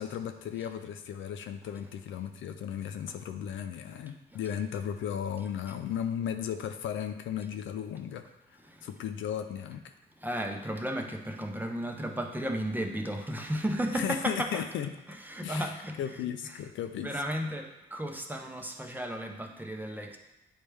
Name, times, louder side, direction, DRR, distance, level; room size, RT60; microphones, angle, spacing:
voice 1, 0.0-8.2 8.5-9.9 13.9-14.9 15.4-17.1, left 9 dB, 75° left, 7 dB, 0.5 m, -35 dB
voice 2, 10.2-14.6 15.2-16.0 17.0-20.2, equal, 10° right, 3 dB, 0.7 m, -34 dB
8.8 x 3.3 x 3.3 m, 0.95 s
cardioid pair, 90°, 20 cm